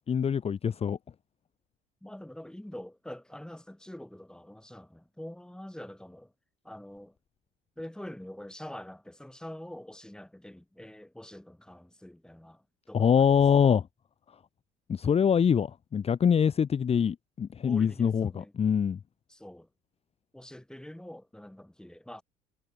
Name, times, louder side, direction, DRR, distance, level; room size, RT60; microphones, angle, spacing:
voice 1, 0.1-1.0 12.9-13.9 14.9-19.0, left 7 dB, 35° left, 1.1 m, -24 dB
voice 2, 2.0-6.3 6.6-7.1 7.8-13.4 17.6-18.5 19.3-19.7 20.3-22.2, left 1 dB, 5° left, 3.7 m, -45 dB
hypercardioid pair, 60°, 17 cm